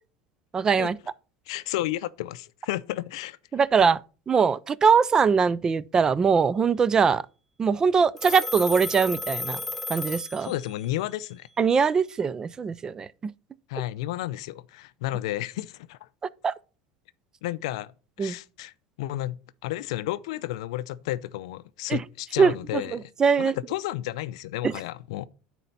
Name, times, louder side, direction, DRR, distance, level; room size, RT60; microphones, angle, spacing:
voice 1, 0.5-1.0 3.5-4.0 4.3-7.2 7.6-9.6 9.9-10.5 11.6-13.1 16.4-16.5 18.2-18.3 21.9-22.0 22.4-22.5 22.9-23.5 24.6-24.7, right 6 dB, 20° right, 0.3 m, -22 dB
voice 2, 1.5-3.4 10.4-11.5 13.7-16.1 17.4-17.9 18.2-18.7 19.0-23.1 23.4-25.3, left 15 dB, 85° left, 0.4 m, -32 dB
Telephone, 8.2-10.9, left 2 dB, 5° left, 0.8 m, -33 dB
10.0 x 4.2 x 4.0 m
supercardioid pair, 135°, 3 cm